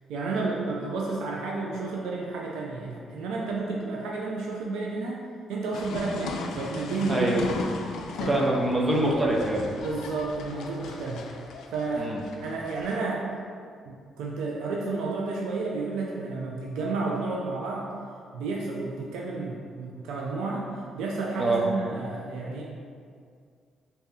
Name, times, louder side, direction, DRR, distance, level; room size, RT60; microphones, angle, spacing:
voice 1, 0.1-5.2 5.5-7.3 8.2-8.4 9.8-11.2 11.7-12.1 12.4-13.3 13.9-17.9 18.3-20.7 20.9-22.6, right 3 dB, 90° right, -2 dB, 0.4 m, -31 dB
sound 1, 5.7-12.9, left 3 dB, 80° left, 0.3 m, -37 dB
voice 2, 7.1-7.4 8.3-9.7 12.0-12.2 21.4-21.6, right 1 dB, 25° right, -2 dB, 0.6 m, -24 dB
2.7 x 2.7 x 3.7 m, 2.2 s
cardioid pair, 90°, 0 cm